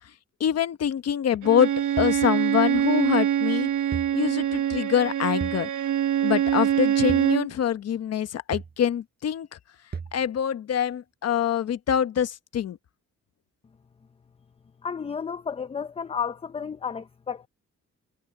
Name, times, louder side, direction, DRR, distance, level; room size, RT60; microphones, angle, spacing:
voice 1, 0.4-3.7 4.1-5.7 6.2-9.5 10.1-12.8, left 9 dB, 60° left, 1.0 m, -25 dB
Bowed string instrument, 1.4-7.5, right 10 dB, 90° right, 1.3 m, -24 dB
sound 1, 2.0-2.2 3.9-4.2 5.4-5.6 7.1-7.3 8.5-8.8 9.9-10.2, right 5 dB, 35° right, 4.6 m, -34 dB
voice 2, 14.8-17.5, left 7 dB, 20° left, 0.5 m, -32 dB
cardioid pair, 135°, 29 cm